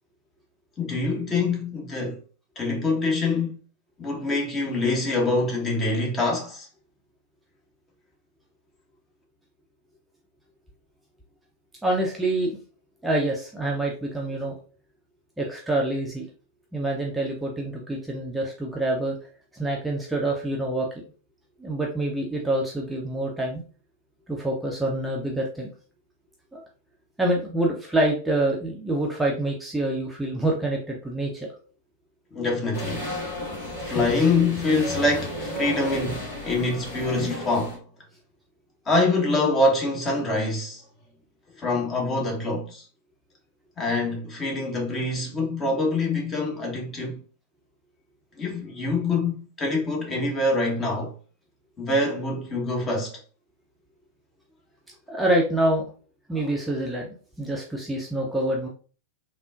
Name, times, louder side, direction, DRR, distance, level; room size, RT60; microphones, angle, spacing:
voice 1, 0.8-2.2 2.6-3.6 4.0-6.7 32.3-33.0 33.9-37.8 38.9-40.8 41.6-42.8 43.8-47.2 48.4-51.1 51.8-53.2, left 2 dB, 25° left, 1.0 m, -25 dB
voice 2, 11.8-12.6 13.0-14.5 15.4-16.3 16.7-19.2 19.5-20.9 21.6-23.6 24.3-25.7 26.5-26.6 27.2-31.5 55.1-55.8 56.3-57.1 57.4-58.7, right 1 dB, 5° right, 0.5 m, -26 dB
sound 1, 32.7-37.8, left 1 dB, 70° left, 1.4 m, -33 dB
3.5 x 2.4 x 2.4 m
figure-of-eight pair, 90°, 0 cm